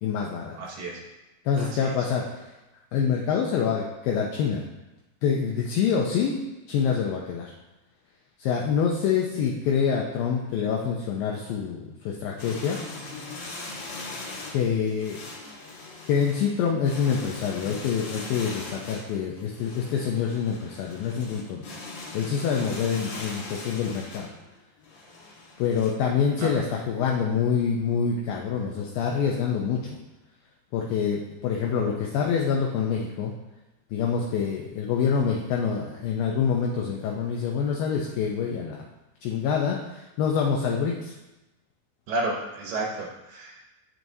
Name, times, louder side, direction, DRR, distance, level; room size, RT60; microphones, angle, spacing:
voice 1, 0.0-0.5 1.5-2.5 2.9-4.6 5.2-7.5 8.4-12.8 14.5-15.2 16.1-21.6 22.1-24.3 25.6-30.0 30.7-33.3 33.9-38.9 39.2-41.1, left 6 dB, 80° left, -1 dB, 2.1 m, -26 dB
voice 2, 0.6-1.0 1.6-1.7 26.4-26.5 42.1-43.7, right 2 dB, 75° right, -1 dB, 2.2 m, -31 dB
sound 1, 12.4-25.9, left 3 dB, 60° left, 2.7 m, -40 dB
8.9 x 7.8 x 2.7 m, 1.0 s
omnidirectional pair, 4.8 m